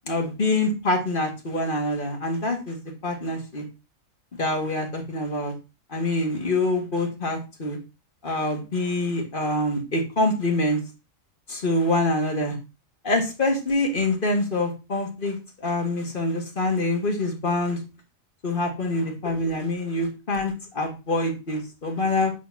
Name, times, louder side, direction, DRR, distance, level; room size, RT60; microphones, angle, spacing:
voice 1, 0.1-3.7 4.4-5.5 5.9-7.8 8.2-10.8 11.5-12.6 13.0-17.8 18.4-22.3, left 2 dB, 40° left, 2 dB, 1.9 m, -25 dB
8.5 x 6.5 x 2.8 m, 0.27 s
omnidirectional pair, 1.4 m